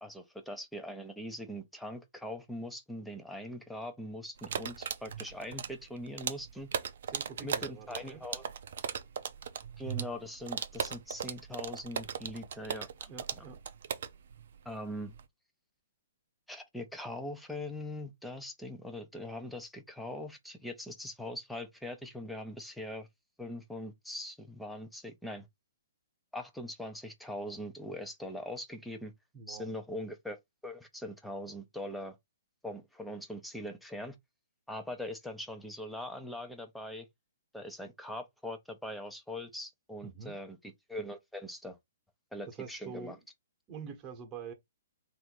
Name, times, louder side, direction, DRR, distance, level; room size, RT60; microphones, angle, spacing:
voice 1, 0.0-6.7 7.4-8.4 9.8-13.1 14.6-15.1 16.5-23.1 23.4-25.5 26.3-29.1 29.5-30.4 30.6-32.2 32.6-34.2 34.7-37.1 37.5-40.6 40.9-41.8 42.3-43.2, left 1 dB, ahead, 0.8 m, -41 dB
sound 1, 4.4-15.2, right 7 dB, 60° right, 0.6 m, -38 dB
voice 2, 7.1-8.2 13.1-13.6 29.3-29.7 40.0-40.4 42.5-43.2 43.7-44.5, right 6 dB, 25° right, 1.2 m, -46 dB
3.4 x 2.7 x 4.5 m
figure-of-eight pair, 130°, 0 cm